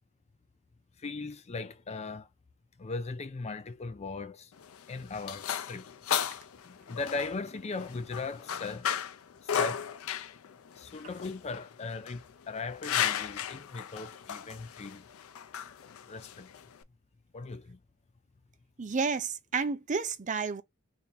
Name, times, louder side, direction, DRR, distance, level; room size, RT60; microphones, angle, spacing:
voice 1, 1.0-2.3 2.8-4.5 4.9-5.9 6.6-8.9 9.4-9.9 10.8-15.0 16.1-16.5 17.3-17.8, left 3 dB, 30° left, 0.4 m, -38 dB
sound 1, 4.5-16.8, left 9 dB, 90° left, 0.4 m, -35 dB
voice 2, 18.8-20.6, right 4 dB, 35° right, 0.5 m, -31 dB
3.4 x 2.7 x 3.4 m
head